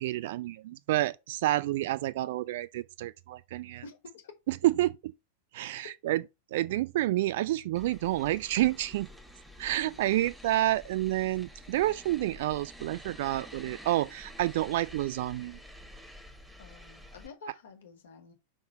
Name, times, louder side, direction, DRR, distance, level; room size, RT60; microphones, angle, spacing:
voice 1, 0.0-3.8 4.5-4.9 5.5-6.2 6.5-9.1 9.6-15.6, right 15 dB, 55° right, 0.5 m, -29 dB
voice 2, 3.8-4.3 16.6-18.3, left 4 dB, 60° left, 1.6 m, -49 dB
sound 1, 7.8-17.3, equal, 5° right, 1.0 m, -49 dB
5.6 x 3.7 x 5.4 m
figure-of-eight pair, 90°, 0 cm